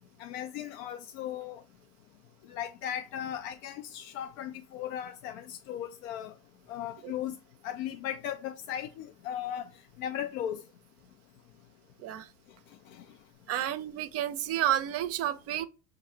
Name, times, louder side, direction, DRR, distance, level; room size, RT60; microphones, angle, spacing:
voice 1, 0.2-1.6 2.5-6.3 6.7-7.3 7.6-9.7 10.0-10.6 12.9-13.0, left 10 dB, 75° left, 0.6 m, -37 dB
voice 2, 13.5-15.6, right 12 dB, 40° right, 0.5 m, -30 dB
5.5 x 2.6 x 2.7 m
supercardioid pair, 120°, 40 cm